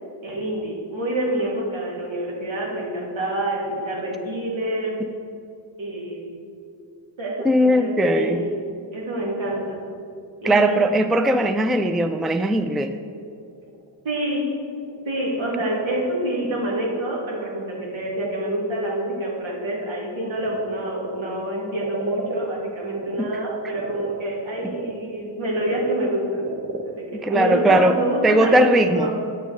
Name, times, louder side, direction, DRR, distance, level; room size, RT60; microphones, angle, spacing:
voice 1, 0.2-5.0 5.8-6.3 7.2-8.5 8.9-9.8 10.4-10.7 14.0-14.5 15.1-26.4 26.8-29.1, right 1 dB, 80° right, -3 dB, 2.7 m, -27 dB
voice 2, 7.4-8.4 10.4-12.9 23.2-23.3 24.6-24.7 27.2-28.0 28.2-29.1, right 1 dB, ahead, 8 dB, 0.3 m, -19 dB
Frog, 11.9-23.3 23.6-28.3, right 3 dB, 40° right, 1.0 m, -39 dB
9.0 x 6.7 x 6.5 m, 2.4 s
wide cardioid pair, 105°, 47 cm